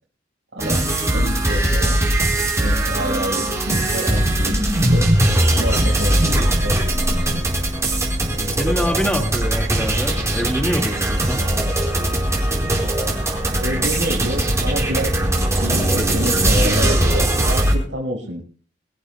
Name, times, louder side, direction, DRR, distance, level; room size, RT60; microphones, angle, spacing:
voice 1, 0.5-0.9 1.1-2.0 2.5-5.1 5.6-7.4 13.6-15.2 15.6-18.4, equal, 80° right, -3 dB, 5.0 m, -28 dB
sound 1, 0.6-17.7, right 1 dB, 15° right, 4.6 m, -20 dB
voice 2, 8.5-11.5, equal, 5° left, 4 dB, 2.1 m, -25 dB
25.0 x 14.5 x 2.3 m, 0.40 s
head